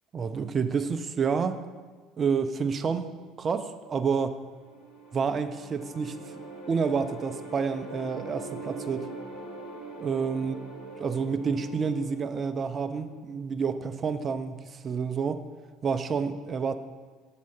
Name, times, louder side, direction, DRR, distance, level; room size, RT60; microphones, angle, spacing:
voice 1, 0.1-1.6 2.2-3.1 3.4-4.4 5.1-6.2 6.7-9.1 10.0-10.5 11.0-15.4 15.8-16.8, right 5 dB, 35° right, 10 dB, 0.5 m, -29 dB
sound 1, 4.3-13.5, right 2 dB, 80° left, 1.5 m, -43 dB
7.5 x 4.1 x 5.6 m, 1.4 s
hypercardioid pair, 65°, 0 cm